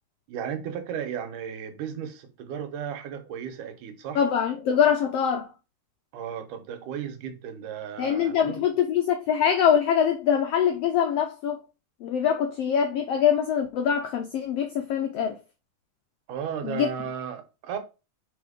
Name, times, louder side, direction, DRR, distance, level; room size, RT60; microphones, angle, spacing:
voice 1, 0.3-4.2 6.1-8.6 16.3-17.8, right 8 dB, 85° right, 2.5 m, -35 dB
voice 2, 4.1-5.5 8.0-11.6 12.0-15.4 16.6-16.9, left 8 dB, 90° left, 1.3 m, -24 dB
5.0 x 4.5 x 5.0 m
omnidirectional pair, 3.6 m